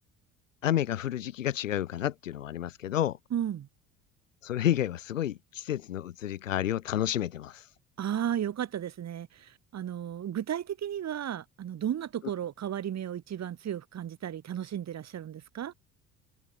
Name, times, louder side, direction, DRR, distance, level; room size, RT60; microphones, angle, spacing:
voice 1, 0.6-3.2 4.4-7.7, left 11 dB, 75° left, 3.7 m, -30 dB
voice 2, 3.3-3.7 8.0-15.7, right 10 dB, 45° right, 7.0 m, -34 dB
figure-of-eight pair, 60°, 38 cm